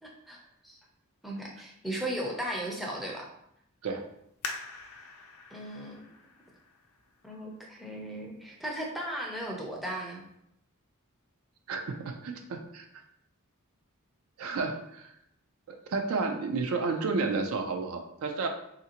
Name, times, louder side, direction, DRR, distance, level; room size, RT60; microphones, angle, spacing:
voice 1, 0.0-0.8 1.2-3.3 5.5-6.0 7.2-10.2, right 1 dB, ahead, -3 dB, 0.5 m, -36 dB
sound 1, 4.4-7.8 8.4-8.5 9.1-9.5 9.9-10.0, left 4 dB, 85° left, 0.5 m, -44 dB
voice 2, 11.7-12.9 14.4-15.1 15.7-18.5, right 4 dB, 70° right, 4 dB, 0.4 m, -31 dB
3.2 x 2.5 x 2.8 m, 0.77 s
head